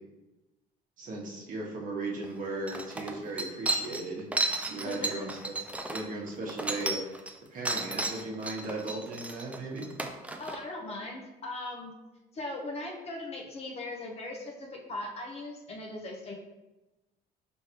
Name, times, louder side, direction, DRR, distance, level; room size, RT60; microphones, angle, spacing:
voice 1, 1.0-4.2 4.7-5.5 5.9-7.0 7.5-9.9, right 2 dB, 50° right, -2 dB, 1.0 m, -36 dB
sound 1, 2.2-2.3 2.7-7.3 7.6-10.6, right 2 dB, 10° right, 0.3 m, -33 dB
voice 2, 4.8-5.3 10.4-11.9 12.3-16.3, left 2 dB, 40° left, 0 dB, 0.7 m, -39 dB
4.6 x 3.1 x 3.0 m, 1.1 s
cardioid pair, 110°, 17 cm